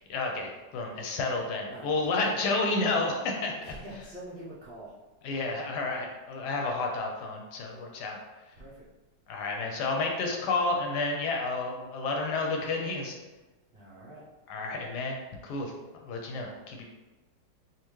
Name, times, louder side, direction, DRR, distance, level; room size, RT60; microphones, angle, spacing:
voice 1, 0.1-3.5 3.9-4.0 5.2-8.2 9.3-13.1 14.5-15.2 15.4-15.7 16.0-16.9, left 3 dB, 75° left, 1 dB, 1.1 m, -30 dB
voice 2, 1.7-2.3 3.6-4.9 8.6-8.7 13.7-14.2, right 1 dB, 90° right, -8 dB, 0.5 m, -44 dB
3.5 x 2.7 x 3.0 m, 1.2 s
omnidirectional pair, 2.0 m